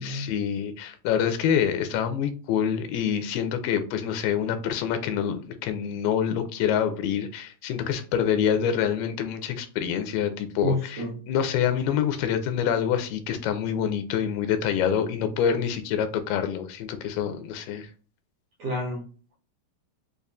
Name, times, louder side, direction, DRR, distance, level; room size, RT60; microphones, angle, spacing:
voice 1, 0.0-17.9, left 8 dB, 90° left, 2.6 m, -26 dB
voice 2, 10.6-11.2 18.6-19.3, equal, 75° right, 1.4 m, -30 dB
6.6 x 2.4 x 2.4 m
omnidirectional pair, 4.3 m